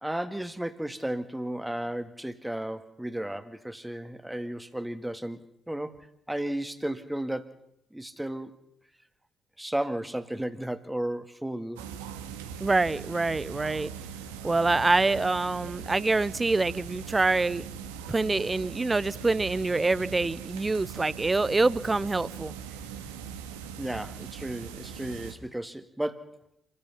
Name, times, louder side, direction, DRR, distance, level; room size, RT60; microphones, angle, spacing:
voice 1, 0.0-6.0 6.3-7.6 7.9-8.6 9.6-11.9 23.8-26.4, right 1 dB, 5° right, 10 dB, 2.1 m, -34 dB
sound 1, 11.8-25.3, right 7 dB, 75° right, 2.1 m, -41 dB
voice 2, 12.6-13.9 14.4-17.7 18.1-22.5, right 3 dB, 25° right, 21 dB, 0.9 m, -25 dB
29.0 x 18.5 x 5.7 m, 0.79 s
figure-of-eight pair, 45°, 0 cm